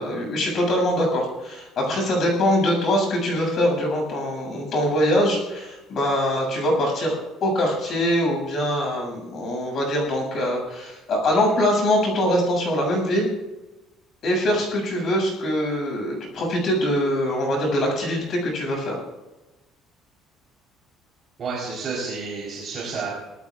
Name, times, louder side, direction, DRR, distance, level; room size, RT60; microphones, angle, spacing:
voice 1, 0.0-7.2 7.4-13.3 14.2-19.0, equal, 40° left, 1 dB, 7.2 m, -23 dB
voice 2, 21.4-23.1, right 4 dB, 35° right, -5 dB, 4.0 m, -30 dB
25.0 x 18.5 x 2.5 m, 1.0 s
cardioid pair, 165°, 0 cm